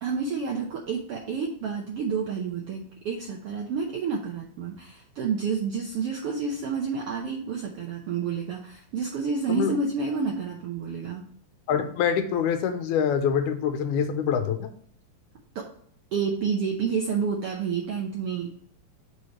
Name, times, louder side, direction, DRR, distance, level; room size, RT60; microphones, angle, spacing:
voice 1, 0.0-11.3 15.5-15.7 16.1-18.5, right 5 dB, 75° right, -1 dB, 1.3 m, -29 dB
voice 2, 11.7-14.7, left 7 dB, 80° left, 7 dB, 2.1 m, -25 dB
6.8 x 3.2 x 5.8 m, 0.62 s
omnidirectional pair, 3.6 m